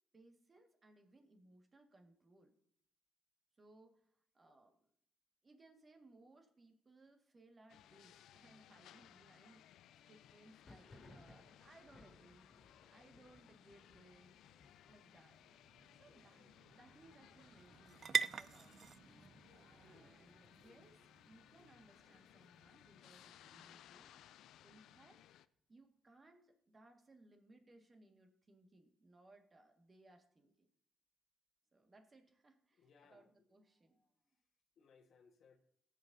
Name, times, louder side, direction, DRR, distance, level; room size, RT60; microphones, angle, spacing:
voice 1, 0.1-2.6 3.5-4.8 5.4-9.7 10.1-12.6 12.9-14.4 14.8-15.4 16.0-19.2 19.8-24.1 24.6-25.3 25.7-30.7 31.7-34.3, right 2 dB, 30° right, 4 dB, 1.8 m, -65 dB
sound 1, 7.7-25.5, left 11 dB, 80° left, 0.3 m, -63 dB
Thunder, 10.5-20.0 20.3-20.9 21.2-22.2 22.6-24.3, left 2 dB, 40° left, 2.3 m, -66 dB
sound 2, 14.5-22.4, right 6 dB, 45° right, 0.3 m, -45 dB
voice 2, 16.0-16.5 19.9-20.1 20.6-20.8 32.8-33.3 34.8-35.6, left 5 dB, 65° left, 4 dB, 1.4 m, -67 dB
18.5 x 7.9 x 2.7 m, 0.68 s
cardioid pair, 90°, 0 cm